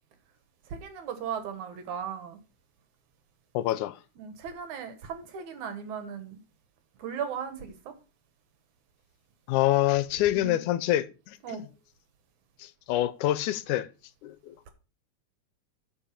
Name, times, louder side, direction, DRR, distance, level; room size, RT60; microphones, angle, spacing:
voice 1, 0.7-2.4 4.2-6.4 7.0-7.9 10.3-10.6 11.4-11.6, right 7 dB, 70° right, 2.7 m, -37 dB
voice 2, 3.5-4.0 9.5-11.6 12.6-13.9 14.2-14.6, left 14 dB, 80° left, 2.0 m, -26 dB
8.9 x 5.3 x 5.8 m
omnidirectional pair, 3.5 m